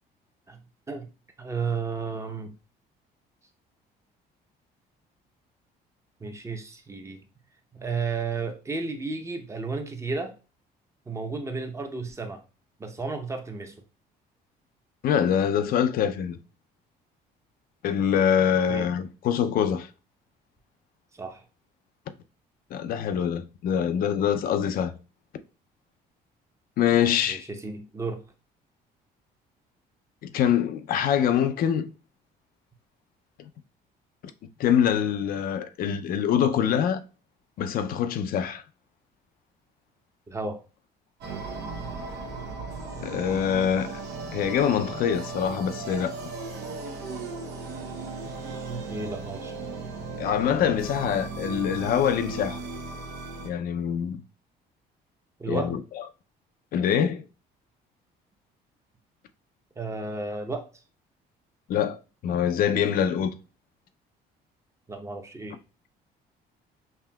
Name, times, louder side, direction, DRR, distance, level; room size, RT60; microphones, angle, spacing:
voice 1, 1.4-2.5 6.2-7.2 7.7-10.3 11.1-12.4 12.8-13.8 18.7-18.9 21.1-21.4 27.3-28.2 40.3-40.6 48.9-49.5 55.4-55.7 59.8-60.7 64.9-65.6, right 4 dB, 15° right, 0.8 m, -33 dB
voice 2, 15.0-16.4 17.8-19.9 22.7-24.9 26.8-27.5 30.2-31.9 34.6-37.0 37.6-38.6 43.0-43.9 44.3-46.1 50.2-52.6 53.4-54.2 55.5-55.8 56.7-57.2 61.7-63.3, left 8 dB, 60° left, 0.5 m, -24 dB
sound 1, 41.2-53.5, right 3 dB, 80° right, 0.8 m, -36 dB
5.6 x 2.7 x 2.2 m
cardioid pair, 110°, 17 cm